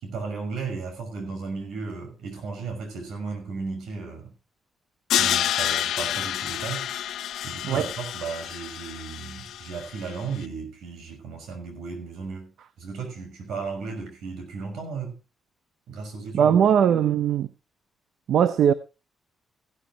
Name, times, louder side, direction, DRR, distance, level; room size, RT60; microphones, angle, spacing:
voice 1, 0.0-4.3 5.2-6.9 7.4-12.5 12.8-15.2 15.9-16.8, right 4 dB, 80° right, 5.7 m, -35 dB
Crash cymbal, 5.1-10.1, left 11 dB, 85° left, 0.7 m, -28 dB
voice 2, 16.3-17.5 18.3-18.7, right 8 dB, 65° right, 0.6 m, -19 dB
15.5 x 12.5 x 2.9 m
cardioid pair, 170°, 0 cm